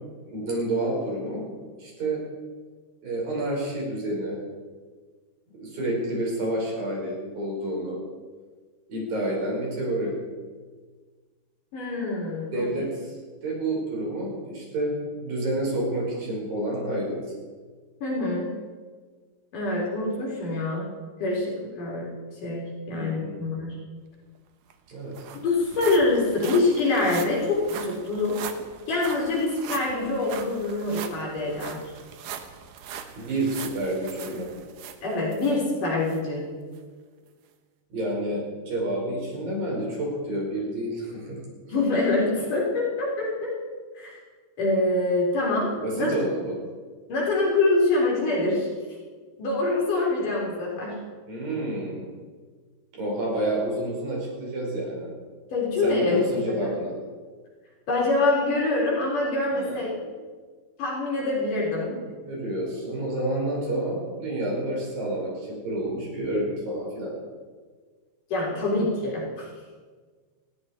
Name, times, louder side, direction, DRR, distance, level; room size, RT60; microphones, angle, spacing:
voice 1, 0.3-1.4 1.8-2.2 3.0-4.4 5.5-8.0 8.9-10.1 12.5-13.2 13.4-14.9 15.2-17.2 22.9-23.3 24.9-25.2 33.2-34.5 37.9-41.4 45.8-46.6 51.3-52.0 52.9-55.1 55.8-56.9 59.5-59.8 62.2-67.1, right 1 dB, 55° right, -2 dB, 6.4 m, -29 dB
voice 2, 11.7-12.7 18.0-18.5 19.5-20.9 21.2-22.1 22.4-23.8 25.3-28.4 28.9-31.9 35.0-36.5 41.7-43.5 43.9-44.2 44.6-46.1 47.1-48.7 49.4-51.0 55.5-56.2 56.5-56.7 57.9-59.9 60.8-62.0 68.3-69.5, left 2 dB, 50° left, -4 dB, 4.9 m, -25 dB
sound 1, 24.4-24.5 24.7-35.6 36.1-36.2 36.8-36.9, right 8 dB, 75° right, 1.9 m, -40 dB
20.0 x 15.5 x 4.4 m, 1.5 s
omnidirectional pair, 5.1 m